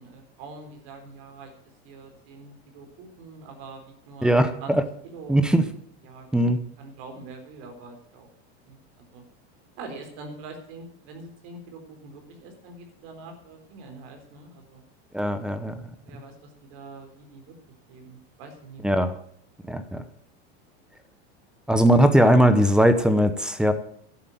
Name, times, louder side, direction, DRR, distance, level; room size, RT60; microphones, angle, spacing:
voice 1, 0.0-1.5 1.8-4.3 4.6-4.7 5.0-5.4 6.0-6.3 6.8-8.3 8.7-9.2 9.8-14.8 16.0-17.5 17.9-19.0, right 3 dB, 50° right, 4 dB, 3.9 m, -44 dB
voice 2, 4.2-4.8 5.3-5.6 6.3-6.6 15.1-15.8 18.8-19.1 19.7-20.0 21.7-23.7, right 1 dB, ahead, 11 dB, 0.7 m, -19 dB
11.5 x 8.2 x 9.1 m, 0.63 s
supercardioid pair, 165°, 33 cm